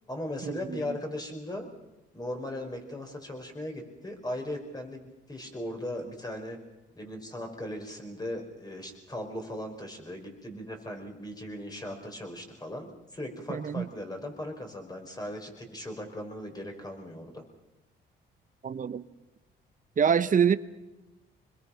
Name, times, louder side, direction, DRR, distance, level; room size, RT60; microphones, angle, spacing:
voice 1, 0.1-1.7 2.1-6.6 6.9-17.4, left 1 dB, 20° left, 5.2 m, -38 dB
voice 2, 13.5-13.9 18.6-19.0 20.0-20.6, right 7 dB, 40° right, 1.1 m, -25 dB
25.5 x 21.5 x 5.9 m
cardioid pair, 90°, 20 cm